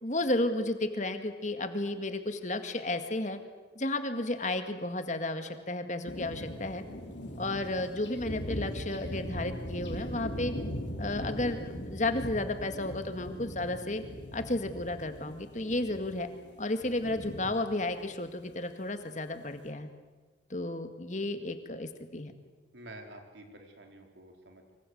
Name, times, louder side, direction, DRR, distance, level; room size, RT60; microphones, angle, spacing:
voice 1, 0.0-3.4 3.8-6.8 7.4-10.5 11.0-14.0 14.3-16.3 16.6-19.9 20.5-22.3, left 2 dB, 40° left, 8 dB, 1.9 m, -33 dB
sound 1, 6.0-18.6, equal, 75° left, 3.7 m, -40 dB
voice 2, 22.7-24.7, right 1 dB, 75° right, 3 dB, 4.0 m, -49 dB
25.0 x 24.5 x 8.0 m, 1.3 s
head